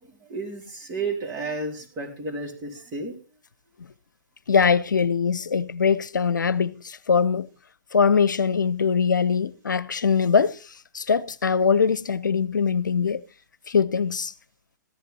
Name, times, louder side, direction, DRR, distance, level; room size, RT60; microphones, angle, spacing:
voice 1, 0.0-3.2, right 3 dB, 30° right, 3.8 m, -32 dB
voice 2, 4.5-7.5 7.9-10.6 10.9-13.2 13.7-14.3, left 6 dB, 85° left, 0.7 m, -22 dB
14.0 x 11.0 x 4.2 m
hypercardioid pair, 125°, 10 cm